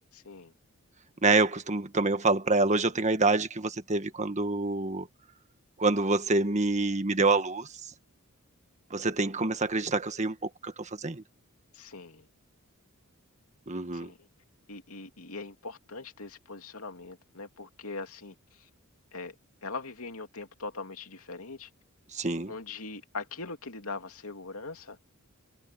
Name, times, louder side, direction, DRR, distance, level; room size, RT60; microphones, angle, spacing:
voice 1, 0.1-0.5 11.7-12.3 13.9-14.3 14.7-18.7 19.1-19.3 19.6-21.7 22.5-25.0, left 3 dB, 80° left, 2.8 m, -41 dB
voice 2, 1.2-5.1 5.8-7.7 8.9-11.2 13.7-14.1 22.1-22.5, right 3 dB, 35° right, 1.6 m, -26 dB
head